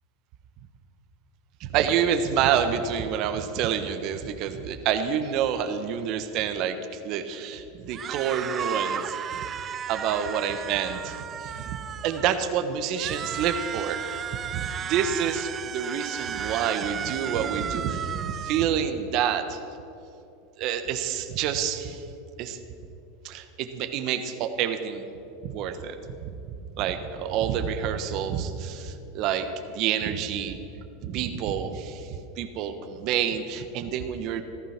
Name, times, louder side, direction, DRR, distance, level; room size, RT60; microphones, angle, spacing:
voice 1, 1.6-6.8 7.0-9.4 9.9-11.8 12.0-14.0 14.5-19.6 20.6-22.0 22.4-22.6 23.2-25.1 25.4-26.0 26.8-29.5 29.7-30.6 31.0-34.4, right 8 dB, 50° right, 8 dB, 1.2 m, -28 dB
sound 1, 7.9-12.4 12.9-18.6, right 8 dB, 30° right, 0.5 m, -34 dB
14.5 x 14.0 x 5.9 m, 2.8 s
supercardioid pair, 120°, 0 cm